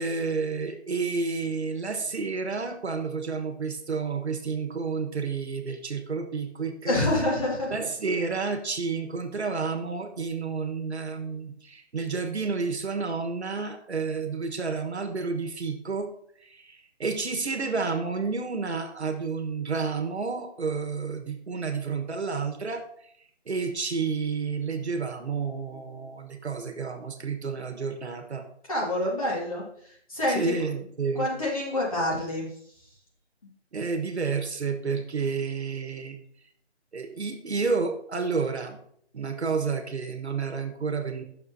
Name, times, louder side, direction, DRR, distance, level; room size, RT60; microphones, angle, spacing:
voice 1, 0.0-7.0 7.7-16.1 16.4-22.8 23.5-28.4 30.3-31.3 33.7-36.2 36.9-38.8 39.1-41.2, right 4 dB, 70° right, 6 dB, 1.4 m, -30 dB
voice 2, 6.9-7.7 28.7-29.6 30.1-30.4 31.2-32.5, left 1 dB, 30° left, -4 dB, 2.1 m, -26 dB
10.5 x 6.5 x 2.8 m, 0.66 s
hypercardioid pair, 180°, 34 cm